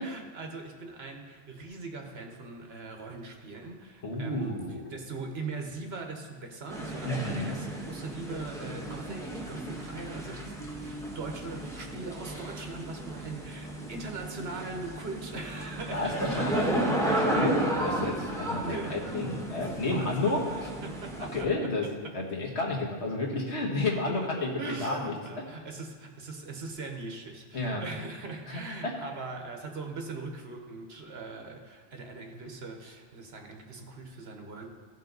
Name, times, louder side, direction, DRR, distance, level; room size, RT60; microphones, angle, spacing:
voice 1, 0.0-17.4 18.6-19.0 19.9-22.1 24.1-34.8, right 3 dB, 70° right, 3 dB, 1.4 m, -41 dB
voice 2, 4.0-4.8 7.0-7.5 15.9-20.4 21.2-21.8 22.1-25.1 27.5-27.8 28.5-28.9, left 2 dB, 75° left, -1 dB, 1.7 m, -31 dB
sound 1, 6.7-21.4, right 1 dB, 5° left, 1.0 m, -34 dB
15.5 x 5.5 x 4.0 m, 1.5 s
omnidirectional pair, 1.1 m